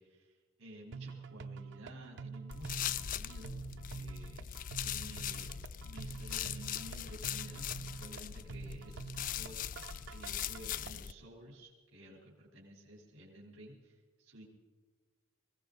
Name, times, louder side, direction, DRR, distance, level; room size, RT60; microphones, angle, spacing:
voice 1, 0.0-4.5 4.8-14.5, right 1 dB, 85° right, -3 dB, 3.4 m, -53 dB
sound 1, 0.9-10.9, right 5 dB, 60° right, 0.5 m, -47 dB
sound 2, 2.5-11.1, left 9 dB, 40° left, 0.3 m, -41 dB
21.0 x 16.5 x 3.8 m, 1.5 s
head